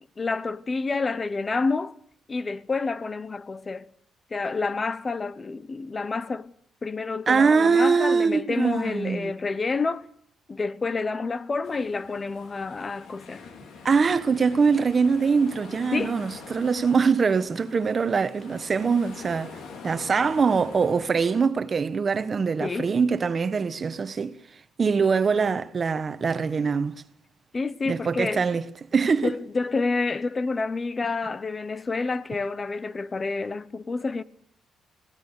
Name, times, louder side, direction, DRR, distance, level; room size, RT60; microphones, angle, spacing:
voice 1, 0.2-2.0 2.3-3.9 4.3-6.5 6.8-10.1 10.5-13.5 15.9-16.2 22.6-22.9 27.5-28.4 29.2-34.2, left 4 dB, 30° left, 0.9 m, -28 dB
voice 2, 7.3-9.3 13.8-19.6 19.8-24.3 24.8-27.0 27.9-28.6 28.9-29.3, right 5 dB, 40° right, 1.2 m, -23 dB
sound 1, 11.6-21.4, left 5 dB, 75° left, 4.4 m, -44 dB
25.0 x 17.0 x 8.2 m
cardioid pair, 90°, 0 cm